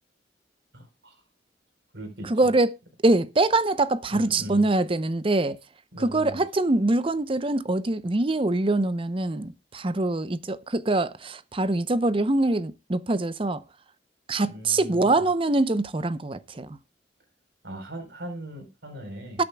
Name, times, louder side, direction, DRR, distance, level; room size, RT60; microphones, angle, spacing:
voice 1, 0.7-1.1 1.9-2.5 4.1-4.7 5.9-6.4 14.4-15.2 17.6-19.4, right 1 dB, 70° right, 4.1 m, -39 dB
voice 2, 2.3-2.7 3.0-5.6 6.0-13.6 14.3-16.8 19.4-19.5, right 2 dB, 30° right, 0.6 m, -24 dB
20.5 x 8.7 x 2.2 m
head